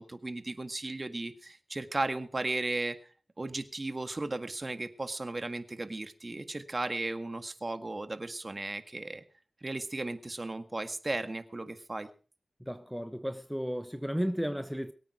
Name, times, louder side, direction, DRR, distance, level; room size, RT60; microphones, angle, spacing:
voice 1, 0.0-3.0 3.4-9.2 9.6-12.1, right 2 dB, 35° right, 1.8 m, -35 dB
voice 2, 12.6-14.9, equal, ahead, 1.0 m, -34 dB
22.5 x 9.0 x 4.9 m
wide cardioid pair, 65°, 0 cm